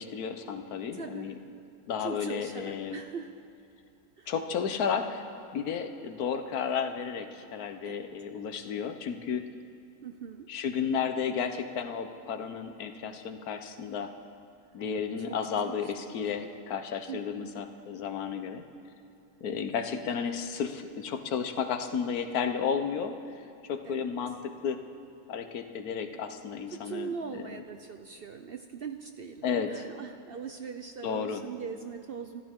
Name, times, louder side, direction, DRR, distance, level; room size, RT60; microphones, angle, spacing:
voice 1, 0.0-1.4 1.9-3.0 4.3-5.2 5.5-9.4 10.5-14.1 14.7-18.6 19.4-23.1 23.6-24.8 25.3-27.6 29.4-29.7 31.0-31.4, left 7 dB, 85° left, 8 dB, 1.4 m, -33 dB
voice 2, 0.9-1.4 2.0-3.5 4.2-4.3 7.8-8.0 10.0-10.5 15.7-16.1 17.1-17.6 23.8-24.1 26.7-32.4, right 6 dB, 60° right, 7 dB, 0.6 m, -41 dB
25.5 x 14.0 x 3.7 m, 2.6 s
omnidirectional pair, 1.6 m